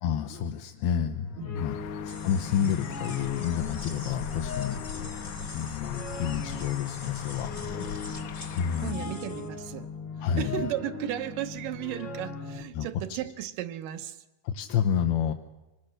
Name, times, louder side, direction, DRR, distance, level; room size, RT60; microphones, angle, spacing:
voice 1, 0.0-1.8 2.0-4.8 5.5-7.5 7.8-8.2 8.6-9.1 10.2-10.7 12.8-12.9 14.5-15.3, left 8 dB, 90° left, 5 dB, 2.8 m, -29 dB
sound 1, 0.9-12.6, left 4 dB, 55° left, 1.3 m, -39 dB
voice 2, 1.4-1.8 8.1-8.4 8.8-9.9 10.2-14.2, right 12 dB, 70° right, 11 dB, 2.4 m, -35 dB
sound 2, 1.5-8.9, left 8 dB, 70° left, 1.9 m, -40 dB
sound 3, 2.1-9.5, left 2 dB, 25° left, 0.7 m, -46 dB
25.5 x 21.0 x 6.5 m, 1.1 s
omnidirectional pair, 4.3 m